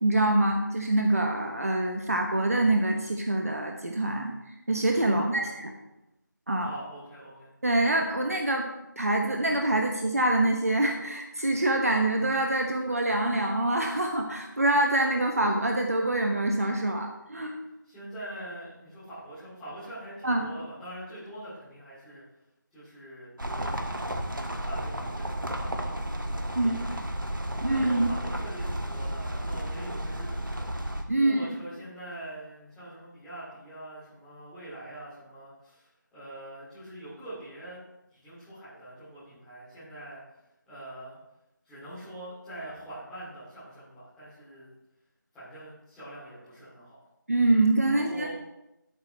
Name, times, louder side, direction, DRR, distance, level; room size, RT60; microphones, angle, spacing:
voice 1, 0.0-5.7 6.5-6.7 7.6-8.6 9.0-17.5 20.2-20.5 26.5-26.8 27.6-28.1 31.1-31.5 47.3-48.3, right 1 dB, 45° right, 2 dB, 1.2 m, -25 dB
voice 2, 5.1-5.5 6.6-7.5 17.8-22.2 22.7-27.0 27.7-30.7 31.2-37.8 38.1-40.2 40.7-41.2 41.6-44.7 45.3-47.0 47.9-48.3, right 1 dB, 5° left, -14 dB, 2.6 m, -44 dB
sound 1, 23.4-31.0, right 1 dB, 70° right, 1.5 m, -33 dB
9.8 x 8.1 x 4.4 m, 0.90 s
figure-of-eight pair, 165°, 11 cm